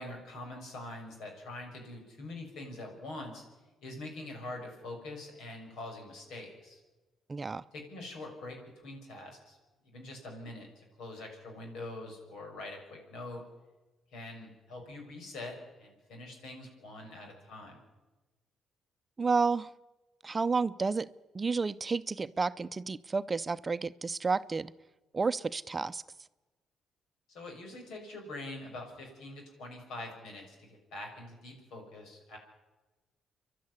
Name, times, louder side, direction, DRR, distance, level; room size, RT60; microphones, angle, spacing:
voice 1, 0.0-3.4 3.8-6.8 7.7-9.6 9.8-10.7 11.0-13.4 14.1-17.8 27.3-32.4, left 2 dB, 80° left, 2 dB, 6.5 m, -44 dB
voice 2, 7.3-7.6 19.2-19.7 20.2-21.1 21.3-24.7 25.1-26.0, right 4 dB, 30° right, 13 dB, 0.6 m, -31 dB
28.5 x 12.0 x 9.7 m, 1.2 s
cardioid pair, 90°, 0 cm